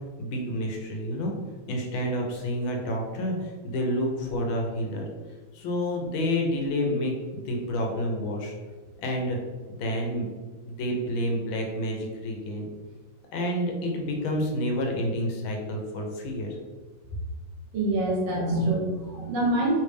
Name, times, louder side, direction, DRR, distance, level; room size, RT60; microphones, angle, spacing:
voice 1, 0.2-1.3 1.7-5.1 5.5-8.5 9.0-9.4 9.7-10.3 10.6-12.7 13.3-16.5, equal, 85° left, 1 dB, 1.5 m, -29 dB
voice 2, 17.7-19.8, right 1 dB, 65° right, -3 dB, 1.6 m, -25 dB
3.4 x 3.3 x 3.3 m, 1.4 s
omnidirectional pair, 2.2 m